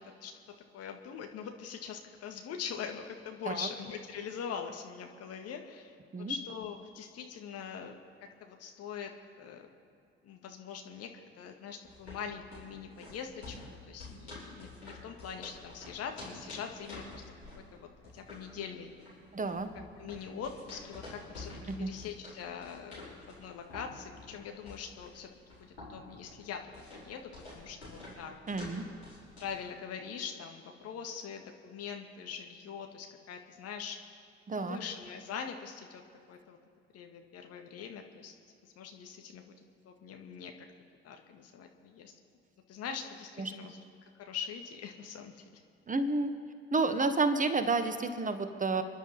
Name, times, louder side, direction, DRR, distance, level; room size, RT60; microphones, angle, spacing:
voice 1, 0.2-6.0 6.3-7.9 8.4-9.1 9.4-9.7 10.2-11.1 11.4-17.2 17.6-18.9 19.7-21.5 21.8-28.3 28.7-28.8 29.4-34.0 34.6-36.0 36.3-36.6 36.9-38.3 38.6-39.6 39.8-40.5 41.0-42.1 42.7-43.8 44.2-45.6, left 7 dB, 50° left, 4 dB, 1.9 m, -43 dB
sound 1, 11.8-29.6, left 2 dB, 85° left, 5.2 m, -49 dB
voice 2, 19.3-19.7 21.7-21.9 28.5-28.8 34.5-34.8 43.4-43.5 45.9-46.3 46.7-48.8, right 3 dB, 25° right, 9 dB, 1.4 m, -30 dB
29.5 x 10.5 x 4.4 m, 2.4 s
figure-of-eight pair, 55°, 32 cm